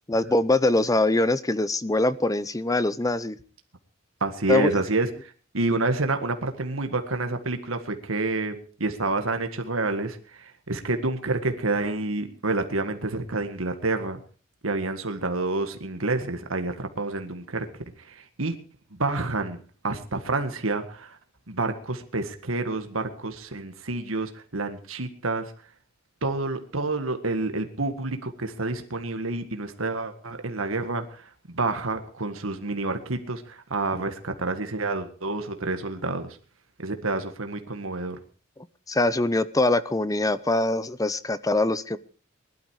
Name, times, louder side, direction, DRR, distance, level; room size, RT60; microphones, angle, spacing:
voice 1, 0.1-3.4 4.5-4.7 38.9-42.0, left 2 dB, 15° left, 16 dB, 0.7 m, -23 dB
voice 2, 4.2-14.2 14.6-18.6 18.9-21.2 21.5-25.5 26.2-36.4 36.8-38.2, right 2 dB, 85° right, 7 dB, 1.7 m, -29 dB
20.0 x 12.0 x 4.8 m, 0.40 s
head